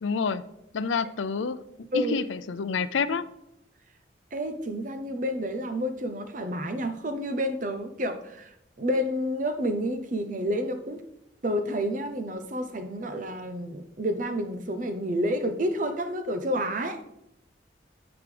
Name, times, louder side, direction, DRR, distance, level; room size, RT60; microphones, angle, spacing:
voice 1, 0.0-0.4 0.7-1.6 1.9-3.3, left 5 dB, 85° left, 14 dB, 0.5 m, -28 dB
voice 2, 4.3-8.5 8.8-11.0 11.4-17.0, equal, 45° right, 8 dB, 0.8 m, -29 dB
9.5 x 8.1 x 3.4 m, 0.81 s
head